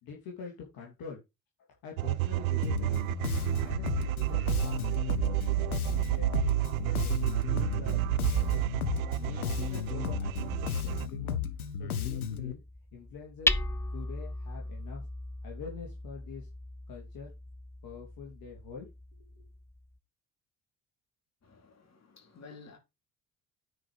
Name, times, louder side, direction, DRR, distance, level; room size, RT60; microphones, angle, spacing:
voice 1, 0.0-1.2 1.8-3.0 3.4-5.5 5.9-8.6 9.2-11.4 11.8-12.6 12.9-13.6 13.9-15.0 15.4-16.5 16.9-17.3 17.8-18.9 19.2-19.4, left 6 dB, 55° left, 2.9 m, -46 dB
sound 1, 2.0-11.1, right 20 dB, 75° right, 0.6 m, -30 dB
Bass guitar, 2.6-12.5, left 8 dB, 85° left, 0.9 m, -34 dB
Hammer, 8.3-20.0, left 2 dB, 5° left, 0.7 m, -38 dB
voice 2, 21.4-22.8, left 4 dB, 35° left, 4.1 m, -52 dB
9.4 x 5.2 x 4.9 m
figure-of-eight pair, 50°, 43 cm